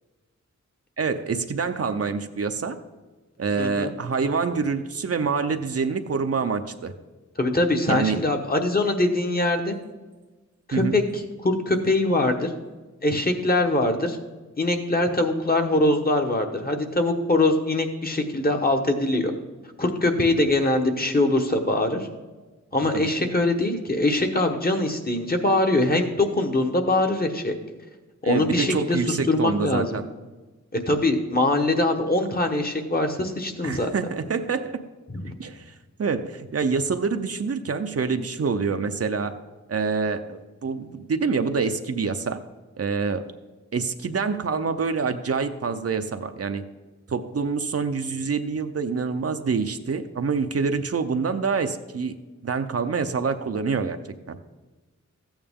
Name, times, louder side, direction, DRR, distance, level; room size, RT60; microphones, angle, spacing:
voice 1, 1.0-2.8 3.4-6.9 7.9-8.2 10.7-11.0 22.9-23.3 28.2-30.1 33.6-34.8 35.4-35.7 36.0-39.3 39.7-42.4 42.8-43.2 43.7-46.6 47.1-52.1 52.4-54.0 54.3-54.4, right 5 dB, 55° right, 8 dB, 0.6 m, -26 dB
voice 2, 3.6-3.9 7.4-9.8 10.7-12.5 13.0-14.2 14.6-19.3 19.8-22.1 22.7-27.5 28.2-29.0 29.3-30.0 30.7-33.9 35.1-35.3, left 2 dB, 30° left, 4 dB, 1.1 m, -23 dB
14.0 x 8.8 x 3.6 m, 1.2 s
wide cardioid pair, 115°, 29 cm